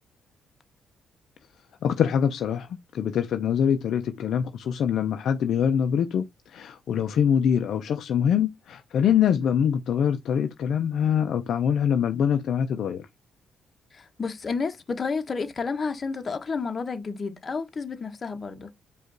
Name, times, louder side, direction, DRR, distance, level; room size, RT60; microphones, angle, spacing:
voice 1, 1.8-13.1, left 8 dB, 70° left, 0.5 m, -24 dB
voice 2, 13.9-18.7, left 4 dB, 35° left, 1.0 m, -31 dB
5.1 x 2.5 x 3.8 m
cardioid pair, 90°, 0 cm